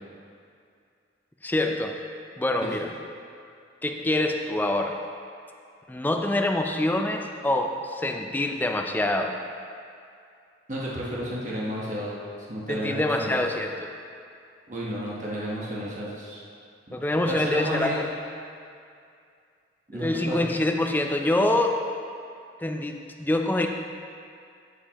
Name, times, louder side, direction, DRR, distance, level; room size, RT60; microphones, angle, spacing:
voice 1, 1.4-2.0 2.4-2.9 3.8-5.0 5.9-9.4 12.7-13.9 16.9-18.1 19.9-21.8 22.6-23.7, left 1 dB, 10° left, 3 dB, 0.4 m, -25 dB
voice 2, 10.7-12.2 12.5-13.4 14.7-16.4 16.9-17.0 17.3-18.0 19.9-20.4, equal, 40° right, -6 dB, 1.2 m, -32 dB
11.5 x 6.8 x 3.0 m, 2.4 s
head